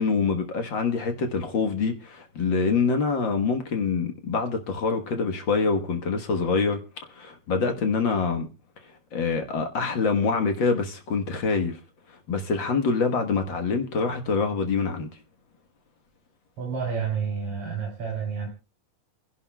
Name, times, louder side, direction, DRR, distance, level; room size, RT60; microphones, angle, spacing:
voice 1, 0.0-6.8 7.1-8.5 9.1-11.8 12.3-15.1, left 4 dB, 50° left, 1.7 m, -25 dB
voice 2, 16.6-18.5, right 6 dB, 50° right, 3.5 m, -29 dB
30.0 x 11.0 x 2.3 m
omnidirectional pair, 3.4 m